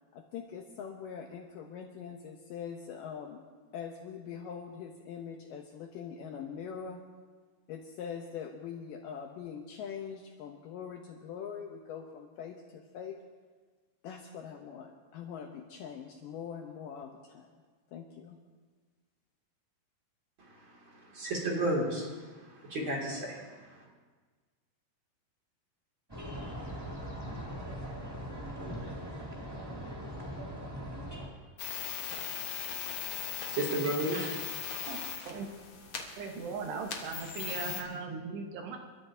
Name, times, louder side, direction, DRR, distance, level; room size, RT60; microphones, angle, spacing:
voice 1, 0.1-3.4 3.7-7.0 7.7-13.2 14.0-17.6 17.9-18.4, left 7 dB, 85° left, 3 dB, 1.9 m, -43 dB
voice 2, 20.4-23.8 33.5-34.3, right 1 dB, 35° right, -2 dB, 2.5 m, -33 dB
sound 1, 26.1-31.3, equal, 10° right, 1.1 m, -40 dB
sound 2, 31.6-37.8, left 8 dB, 70° left, 1.4 m, -39 dB
voice 3, 36.2-38.8, right 5 dB, 75° right, 2 dB, 3.3 m, -38 dB
28.5 x 13.0 x 2.7 m, 1.4 s
omnidirectional pair, 4.9 m